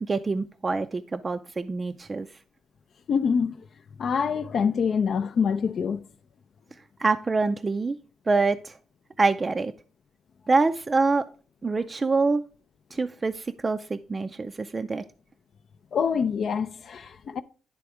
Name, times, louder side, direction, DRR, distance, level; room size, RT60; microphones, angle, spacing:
voice 1, 0.0-2.3 7.0-8.0 8.3-8.8 9.2-9.7 10.5-11.3 11.6-12.4 12.9-15.0, right 3 dB, 30° right, 0.4 m, -25 dB
voice 2, 3.1-3.7 4.0-6.0 15.9-17.4, left 6 dB, 55° left, 0.4 m, -25 dB
10.0 x 3.4 x 4.8 m
cardioid pair, 90°, 0 cm